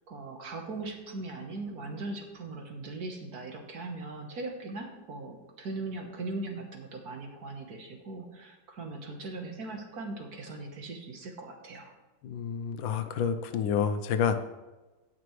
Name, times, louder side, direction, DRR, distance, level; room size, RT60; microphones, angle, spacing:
voice 1, 0.1-11.9, right 3 dB, 55° right, 3 dB, 1.7 m, -39 dB
voice 2, 12.2-14.4, left 7 dB, 80° left, 9 dB, 1.5 m, -29 dB
17.0 x 6.0 x 3.2 m, 1.1 s
omnidirectional pair, 2.1 m